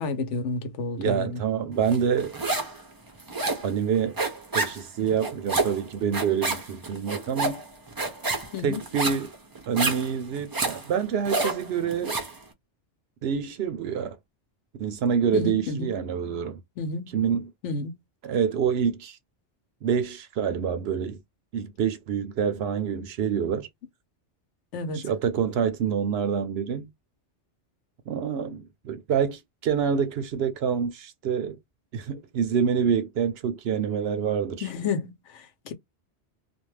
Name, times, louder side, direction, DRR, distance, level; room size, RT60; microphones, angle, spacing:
voice 1, 0.0-1.4 8.5-8.8 15.3-16.0 16.8-17.2 17.6-18.0 24.7-25.1 34.6-35.7, left 4 dB, 80° left, 1.0 m, -31 dB
voice 2, 1.0-2.3 3.6-4.2 4.5-7.6 8.6-9.3 9.7-12.2 13.2-14.2 14.8-16.6 17.1-17.5 18.2-19.2 19.8-21.2 21.5-23.7 24.9-26.9 28.1-31.6 31.9-34.6, right 7 dB, 65° right, 0.7 m, -26 dB
sound 1, 1.9-2.8 3.1-12.4, right 3 dB, 30° right, 0.4 m, -29 dB
2.5 x 2.2 x 3.1 m
omnidirectional pair, 1.2 m